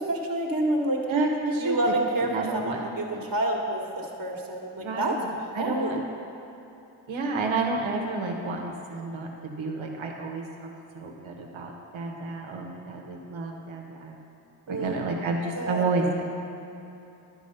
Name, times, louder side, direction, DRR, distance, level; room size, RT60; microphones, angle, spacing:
voice 1, 0.0-1.0 1.6-5.1 5.6-6.0 14.7-15.2 15.5-15.8, right 1 dB, 45° right, 0 dB, 1.6 m, -28 dB
voice 2, 1.1-1.8 2.1-3.3 4.8-5.3 5.5-6.0 7.1-14.2 14.7-16.4, right 3 dB, 75° right, 1 dB, 1.3 m, -30 dB
11.0 x 4.6 x 5.6 m, 3.0 s
supercardioid pair, 40°, 47 cm